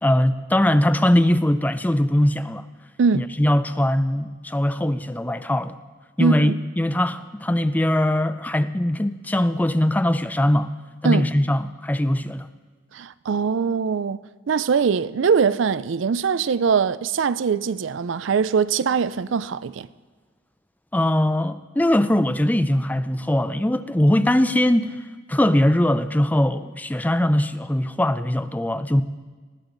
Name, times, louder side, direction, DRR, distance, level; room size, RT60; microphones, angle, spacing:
voice 1, 0.0-2.6 3.1-5.8 6.2-10.7 11.0-12.5 20.9-24.9 25.3-29.0, left 1 dB, 10° left, 0.4 m, -21 dB
voice 2, 3.0-3.3 6.2-6.6 11.0-11.3 12.9-19.9, right 6 dB, 75° right, 0.4 m, -22 dB
20.0 x 15.5 x 3.9 m
head